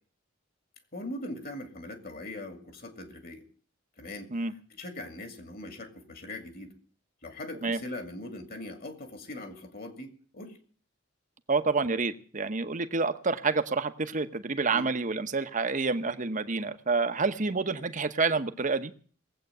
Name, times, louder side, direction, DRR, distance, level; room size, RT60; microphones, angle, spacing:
voice 1, 0.9-3.4 4.0-6.7 7.2-10.6 14.7-14.9, left 1 dB, 50° left, 6 dB, 2.5 m, -41 dB
voice 2, 11.5-18.9, right 4 dB, 40° right, 10 dB, 1.0 m, -28 dB
19.5 x 8.2 x 7.9 m, 0.44 s
head